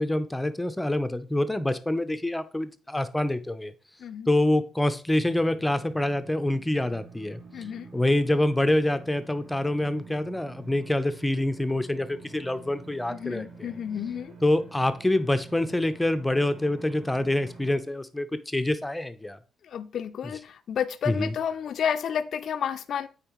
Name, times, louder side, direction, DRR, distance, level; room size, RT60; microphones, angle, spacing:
voice 1, 0.0-3.7 4.3-7.4 7.9-13.7 14.4-19.4 21.1-21.3, left 1 dB, 10° left, 11 dB, 0.6 m, -26 dB
sound 1, 5.3-17.8, right 4 dB, 50° right, 2.6 m, -48 dB
voice 2, 7.5-7.9 13.1-14.3 19.6-23.1, left 8 dB, 60° left, 10 dB, 0.4 m, -31 dB
8.8 x 4.2 x 3.0 m, 0.35 s
cardioid pair, 90°, 0 cm